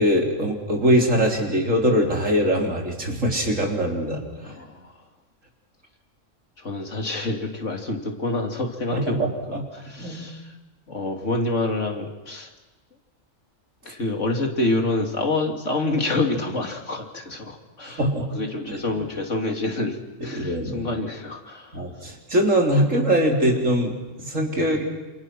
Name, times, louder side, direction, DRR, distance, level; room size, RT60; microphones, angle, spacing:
voice 1, 0.0-4.5 8.9-9.3 9.5-9.6 10.0-10.3 17.8-18.3 20.3-20.8 21.7-24.9, equal, 80° right, 0 dB, 4.3 m, -22 dB
voice 2, 4.4-5.0 6.6-10.6 10.9-12.5 13.8-18.0 18.3-22.0 22.9-23.0, left 2 dB, 70° left, 2 dB, 3.2 m, -27 dB
28.5 x 27.5 x 6.2 m, 1.1 s
omnidirectional pair, 1.3 m